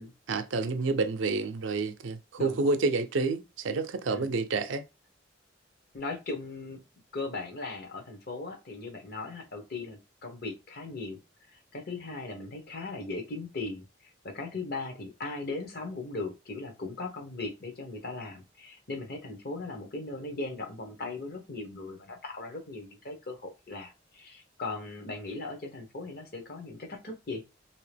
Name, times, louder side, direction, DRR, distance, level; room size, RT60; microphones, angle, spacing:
voice 1, 0.3-4.8, right 3 dB, 85° right, 0.5 m, -29 dB
voice 2, 2.4-2.7 4.1-4.2 5.9-6.8 7.1-11.2 11.5-27.4, left 3 dB, 55° left, 0.9 m, -38 dB
2.8 x 2.8 x 3.3 m
head